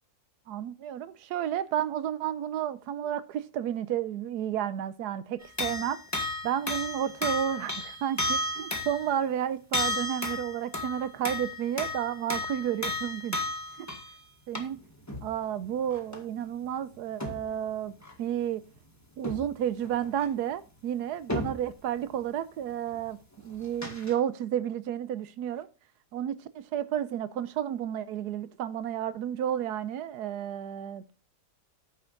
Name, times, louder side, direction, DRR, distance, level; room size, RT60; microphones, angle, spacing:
voice 1, 0.5-6.0 6.4-13.4 13.8-13.9 14.5-14.8 15.2-17.9 18.2-18.6 19.2-23.2 23.4-25.7 26.1-31.1, right 10 dB, 80° right, 1.3 m, -31 dB
sound 1, 5.4-9.1 9.7-14.2 14.5-14.8 15.1-15.3 15.8-16.2 17.2-17.5 18.0-18.1 19.2-19.5 19.8-20.3 21.3-21.7 22.9-23.0 23.5-24.1, left 2 dB, 10° left, 1.6 m, -33 dB
9.7 x 6.8 x 3.9 m
omnidirectional pair, 1.7 m